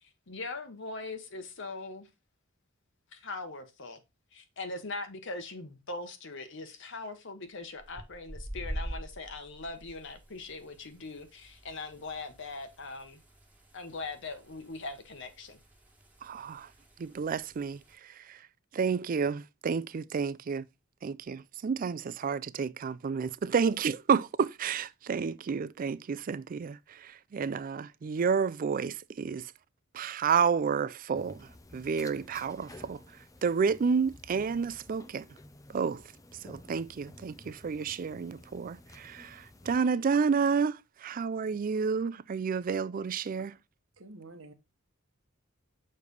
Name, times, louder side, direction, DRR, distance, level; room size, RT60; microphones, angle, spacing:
voice 1, 0.0-2.1 3.1-4.0 4.3-13.2 13.7-15.6, left 3 dB, 60° left, 1.1 m, -41 dB
sound 1, 7.8-17.9, right 1 dB, 10° right, 1.9 m, -46 dB
voice 2, 16.2-16.7 17.0-18.5 18.7-20.7 21.0-29.5 29.9-35.3 35.7-36.0 36.4-43.5, right 6 dB, 40° right, 0.3 m, -30 dB
sound 2, 31.1-39.8, left 1 dB, 15° left, 0.5 m, -53 dB
voice 3, 44.0-44.5, right 2 dB, 75° right, 1.2 m, -49 dB
6.6 x 3.3 x 5.2 m
head